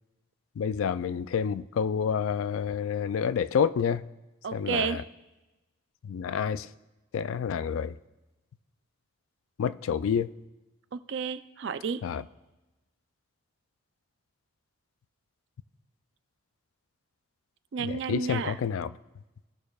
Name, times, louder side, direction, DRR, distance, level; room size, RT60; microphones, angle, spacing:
voice 1, 0.6-4.1 4.5-5.0 6.0-6.7 7.1-7.9 9.6-10.3 12.0-12.2 17.8-18.9, left 7 dB, 85° left, 16 dB, 0.3 m, -28 dB
voice 2, 4.4-5.0 10.9-12.0 17.7-18.6, right 6 dB, 60° right, 12 dB, 0.4 m, -31 dB
17.0 x 6.5 x 2.3 m, 1.1 s
head